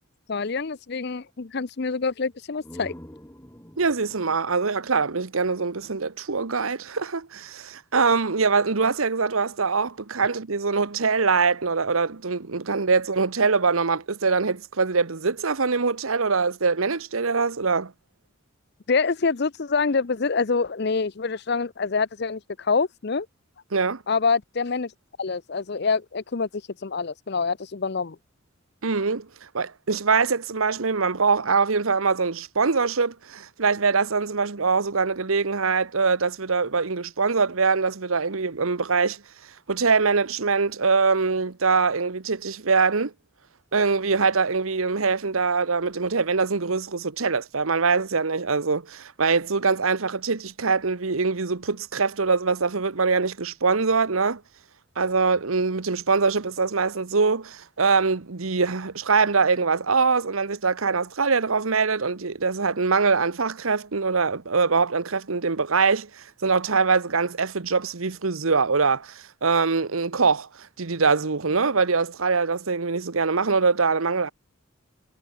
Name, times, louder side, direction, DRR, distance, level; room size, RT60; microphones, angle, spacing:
voice 1, 0.3-2.9 18.9-23.3 24.1-24.9 25.2-28.2, left 4 dB, 50° left, 0.6 m, -26 dB
sound 1, 2.3-6.0, equal, 10° left, 2.6 m, -47 dB
voice 2, 3.8-17.9 23.7-24.0 28.8-29.3 29.5-39.2 39.7-43.1 43.7-54.4 55.0-74.3, right 4 dB, 85° right, 1.1 m, -23 dB
head